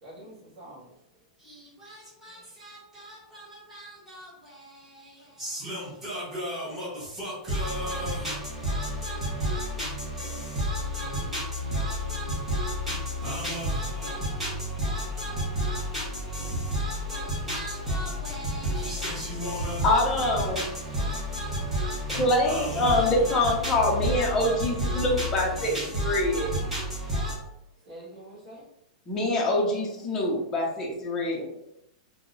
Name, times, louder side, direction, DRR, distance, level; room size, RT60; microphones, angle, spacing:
voice 1, 0.0-0.7 2.2-2.5 3.2-3.4 20.9-21.2 27.8-28.6, right 1 dB, 20° right, -8 dB, 1.3 m, -47 dB
voice 2, 5.4-6.9 7.2-8.4 8.6-9.9 10.2-10.3 10.5-11.4 11.7-14.5 14.8-16.0 16.3-16.4 16.7-20.7 20.9-23.7 24.0-25.3 25.6-26.8 27.1-27.3, equal, 5° right, -8 dB, 1.0 m, -30 dB
voice 3, 19.8-20.6 22.2-25.7 26.0-26.5 29.1-31.4, left 1 dB, 10° left, -4 dB, 0.5 m, -25 dB
2.8 x 2.0 x 3.7 m, 0.80 s
supercardioid pair, 175°, 4 cm